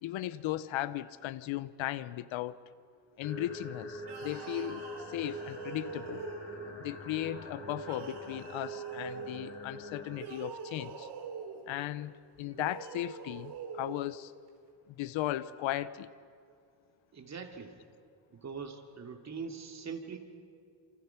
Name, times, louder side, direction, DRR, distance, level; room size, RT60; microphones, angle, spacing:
voice 1, 0.0-2.6 3.2-6.2 6.8-11.1 11.7-14.3 14.9-16.1, left 14 dB, 75° left, 16 dB, 0.9 m, -37 dB
sound 1, 3.2-10.2, right 1 dB, 30° left, 6.4 m, -43 dB
sound 2, 4.0-6.7 7.8-9.3 10.1-11.6 12.5-14.0, right 6 dB, 55° right, 3.9 m, -45 dB
voice 2, 17.1-17.8 18.3-20.2, right 5 dB, 35° right, 4 dB, 2.7 m, -42 dB
29.0 x 27.5 x 5.9 m, 2.2 s
cardioid pair, 120°, 47 cm